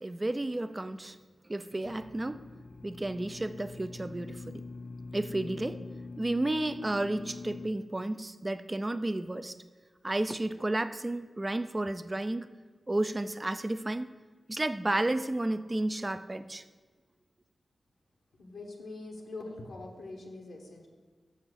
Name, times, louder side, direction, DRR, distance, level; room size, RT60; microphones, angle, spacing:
voice 1, 0.0-1.2 1.4-2.4 2.8-4.6 5.1-5.8 6.2-9.6 10.0-12.5 12.9-14.1 14.5-16.6, right 1 dB, 25° right, 12 dB, 0.5 m, -32 dB
sound 1, 1.8-7.7, left 3 dB, 60° left, 0.3 m, -44 dB
voice 2, 18.4-20.9, left 2 dB, 85° left, -1 dB, 1.1 m, -43 dB
6.8 x 5.7 x 6.4 m, 1.4 s
cardioid pair, 60°, 0 cm